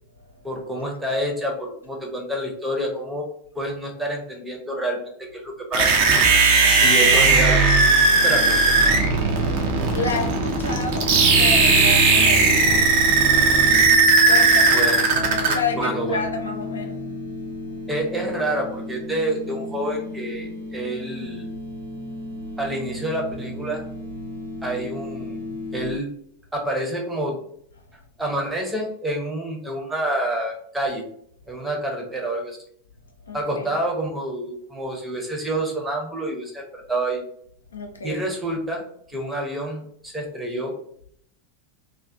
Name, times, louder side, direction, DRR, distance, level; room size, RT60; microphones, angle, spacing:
voice 1, 0.4-3.3 3.5-5.9 6.8-7.6 8.1-8.7 14.7-15.1 15.7-16.2 17.9-21.5 22.6-23.8 24.6-26.1 26.5-27.4 28.2-31.0 31.5-32.6 33.3-37.2 38.0-40.8, right 1 dB, 10° right, 0 dB, 0.7 m, -28 dB
sound 1, 5.7-15.5, right 4 dB, 45° right, 0.5 m, -17 dB
sound 2, 8.8-26.0, left 3 dB, 85° right, 0.9 m, -32 dB
voice 2, 9.9-12.9 14.2-17.0 33.3-33.7 37.7-38.2, left 3 dB, 70° left, 3 dB, 0.4 m, -30 dB
2.3 x 2.3 x 2.5 m, 0.67 s
figure-of-eight pair, 90°, 0 cm